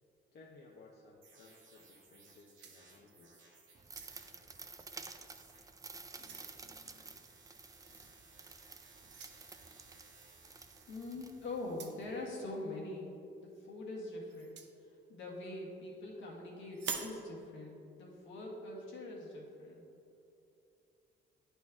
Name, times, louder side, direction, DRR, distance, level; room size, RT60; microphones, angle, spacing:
voice 1, 0.3-3.4, left 3 dB, 55° left, -2 dB, 0.8 m, -59 dB
sound 1, 1.2-12.6, right 4 dB, 80° right, 1.6 m, -62 dB
sound 2, 2.2-3.3 3.8-4.4 5.2-5.4 5.8-6.5 7.9-8.2 9.1-9.4 10.7-10.9 11.6-12.1 14.3-14.7 16.7-17.2, right 6 dB, 65° right, 0.7 m, -45 dB
sound 3, 3.7-11.8, right 4 dB, 15° right, 0.4 m, -52 dB
voice 2, 6.2-7.1 7.8-8.0 10.9-13.1 13.4-14.6 15.1-19.8, left 2 dB, 75° left, -3 dB, 1.6 m, -44 dB
9.1 x 4.3 x 3.6 m, 2.7 s
cardioid pair, 90°, 20 cm